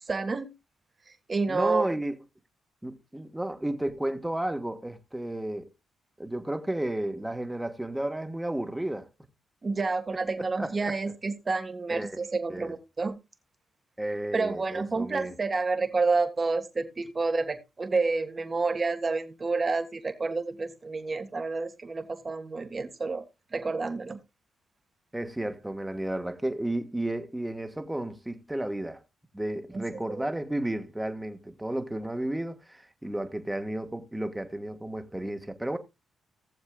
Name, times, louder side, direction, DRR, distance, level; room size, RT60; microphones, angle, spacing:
voice 1, 0.1-0.5 1.3-1.9 9.6-13.2 14.3-23.3 23.5-24.2 29.7-29.8 30.1-30.3, right 3 dB, 35° right, 1.7 m, -29 dB
voice 2, 1.5-2.2 2.8-5.7 6.2-9.1 10.4-11.1 11.9-12.2 12.5-12.7 14.0-15.3 25.1-29.0 29.3-35.8, right 1 dB, 10° right, 1.5 m, -33 dB
18.5 x 7.2 x 2.4 m
supercardioid pair, 55°, 0 cm